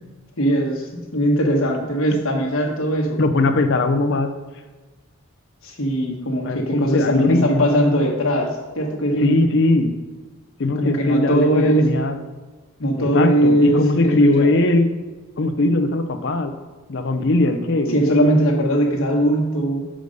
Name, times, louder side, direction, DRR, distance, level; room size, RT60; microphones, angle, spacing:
voice 1, 0.4-3.2 5.6-9.4 10.8-12.0 12.8-14.5 17.9-19.9, right 1 dB, 80° left, 0 dB, 1.3 m, -20 dB
voice 2, 3.2-4.3 6.4-7.7 9.2-9.9 10.6-12.2 13.0-14.9 15.4-16.5 16.9-18.2, left 2 dB, 60° left, 8 dB, 0.6 m, -19 dB
6.5 x 5.0 x 5.2 m, 1.3 s
head